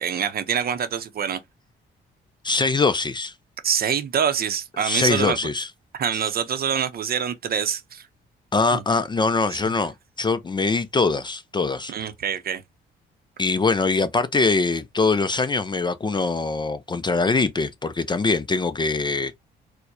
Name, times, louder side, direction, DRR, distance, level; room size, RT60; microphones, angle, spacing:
voice 1, 0.0-1.4 3.6-5.4 6.0-8.1 8.7-8.8 9.5-9.6 11.9-12.6, right 8 dB, 50° right, 0.6 m, -25 dB
voice 2, 2.4-3.3 4.8-5.7 6.1-6.2 8.5-11.9 13.4-19.4, left 3 dB, 25° left, 0.4 m, -23 dB
4.4 x 2.1 x 2.6 m
cardioid pair, 90°, 20 cm